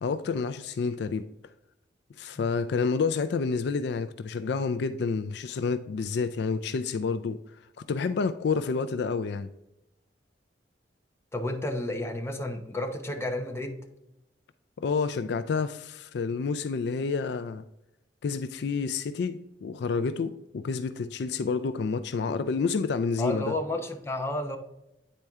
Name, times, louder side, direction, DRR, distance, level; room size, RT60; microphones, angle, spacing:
voice 1, 0.0-1.3 2.2-7.4 7.8-9.5 14.8-17.6 18.2-23.5, left 5 dB, 65° left, 0.4 m, -29 dB
voice 2, 11.3-13.8 23.2-24.6, left 1 dB, 15° left, 0.8 m, -31 dB
9.1 x 4.4 x 3.6 m
head